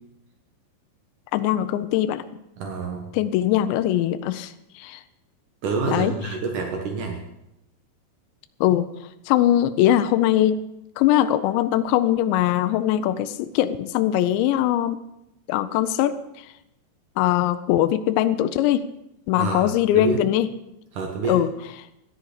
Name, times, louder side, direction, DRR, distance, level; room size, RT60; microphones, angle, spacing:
voice 1, 1.3-2.2 3.1-5.0 5.9-6.1 8.6-8.9 9.3-10.6 11.0-15.0 15.5-16.2 17.2-18.8 19.3-20.5 21.3-21.5, left 12 dB, 85° left, 10 dB, 2.6 m, -21 dB
voice 2, 2.6-3.1 5.6-7.2 19.3-20.2 20.9-21.4, right 4 dB, 85° right, 2 dB, 1.7 m, -27 dB
13.5 x 10.5 x 6.6 m, 0.86 s
omnidirectional pair, 5.8 m